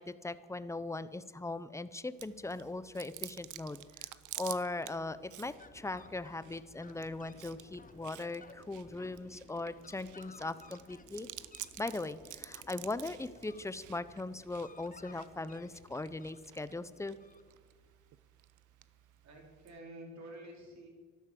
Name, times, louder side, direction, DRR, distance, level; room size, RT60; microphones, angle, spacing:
voice 1, 0.0-4.1 4.4-11.3 11.8-17.2, left 2 dB, 10° left, 14 dB, 0.7 m, -39 dB
Chewing mastication, 2.2-19.8, right 15 dB, 80° right, 0.7 m, -51 dB
Fowl, 4.9-17.9, left 4 dB, 25° left, 1.1 m, -58 dB
voice 2, 19.2-20.9, right 1 dB, 65° right, 0 dB, 4.5 m, -49 dB
12.0 x 12.0 x 7.6 m, 1.5 s
cardioid pair, 90°, 30 cm